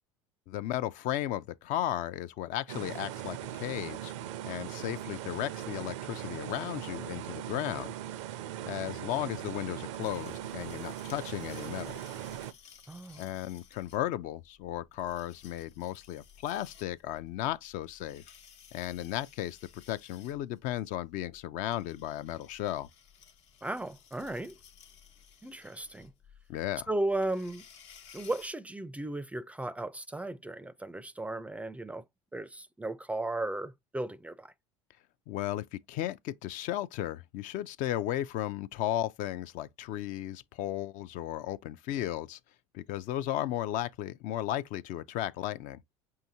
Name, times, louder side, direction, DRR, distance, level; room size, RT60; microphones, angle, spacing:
voice 1, 0.5-4.1 4.4-7.9 8.6-12.0 13.2-18.2 18.7-22.9 26.5-26.9 35.3-42.4 42.7-45.8, left 13 dB, 60° left, 0.4 m, -35 dB
sound 1, 2.7-12.5, right 12 dB, 80° right, 0.5 m, -40 dB
sound 2, 10.0-28.5, left 8 dB, 80° left, 1.2 m, -57 dB
voice 2, 12.9-13.3 23.6-24.6 25.4-26.1 26.9-27.6 28.1-32.0 32.3-34.5, right 2 dB, 10° right, 0.4 m, -35 dB
5.8 x 2.8 x 2.6 m
hypercardioid pair, 85°, 15 cm